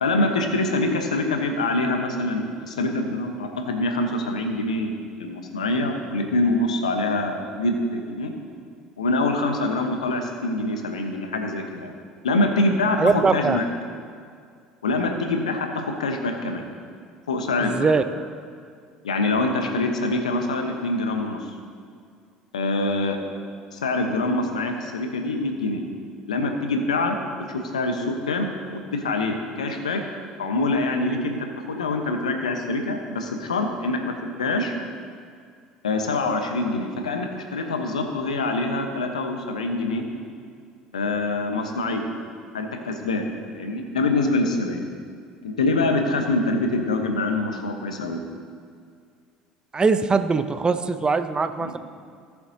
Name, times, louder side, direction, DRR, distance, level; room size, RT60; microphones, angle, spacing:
voice 1, 0.0-4.9 5.2-8.3 9.0-11.9 12.2-13.0 13.3-13.6 14.8-15.7 16.0-16.6 17.3-17.9 19.0-21.5 22.5-23.2 23.7-25.8 26.3-27.2 27.5-30.0 30.4-31.4 31.7-34.1 34.4-34.7 35.8-40.0 40.9-42.0 42.5-43.2 43.5-44.8 45.4-48.2 51.6-51.7, left 2 dB, 85° left, 4 dB, 1.0 m, -25 dB
voice 2, 13.0-13.6 17.6-18.0 49.7-51.8, right 4 dB, 25° right, 11 dB, 0.6 m, -21 dB
18.0 x 7.1 x 2.8 m, 2.2 s
hypercardioid pair, 65°, 4 cm